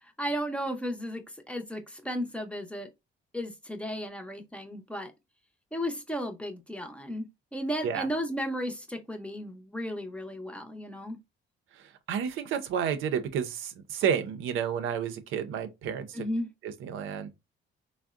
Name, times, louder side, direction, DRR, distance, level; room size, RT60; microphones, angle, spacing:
voice 1, 0.2-2.9 3.3-5.1 5.7-7.3 7.5-11.2 16.1-16.5, equal, 5° left, 0.6 m, -34 dB
voice 2, 11.7-16.3 16.6-17.3, right 8 dB, 85° right, 0.5 m, -31 dB
3.5 x 2.0 x 2.4 m
cardioid pair, 90°, 20 cm